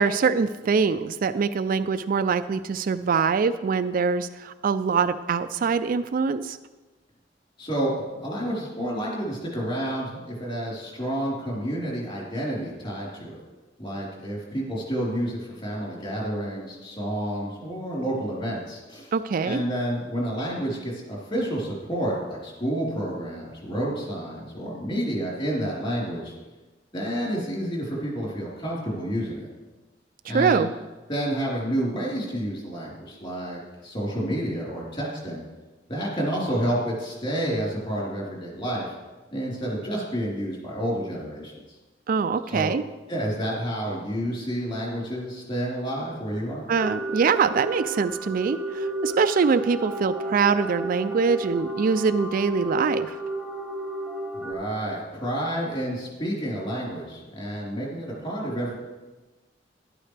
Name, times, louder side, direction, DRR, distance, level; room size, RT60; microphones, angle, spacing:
voice 1, 0.0-6.6 19.1-19.6 30.3-30.7 42.1-42.8 46.7-53.2, right 5 dB, 50° right, 11 dB, 0.3 m, -23 dB
voice 2, 7.6-13.3 13.8-19.1 19.4-26.3 26.9-29.5 30.3-30.7 31.1-35.4 35.9-38.9 39.3-41.5 42.5-42.7 43.1-46.6 54.3-58.7, right 1 dB, 30° left, -4 dB, 3.9 m, -29 dB
sound 1, 46.7-54.5, right 2 dB, 5° left, 1.1 m, -32 dB
12.0 x 11.5 x 3.3 m, 1.2 s
head